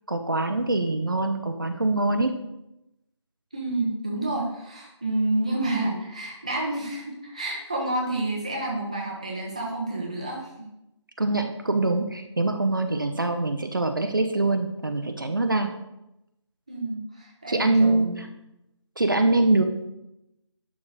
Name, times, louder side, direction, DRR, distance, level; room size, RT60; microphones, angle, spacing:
voice 1, 0.1-2.3 11.2-15.7 17.5-18.3 19.0-19.6, right 2 dB, 45° right, 6 dB, 0.7 m, -24 dB
voice 2, 3.5-10.5 16.7-18.1, right 2 dB, 15° right, -2 dB, 0.8 m, -29 dB
11.0 x 3.8 x 6.3 m, 0.88 s
figure-of-eight pair, 175°, 15 cm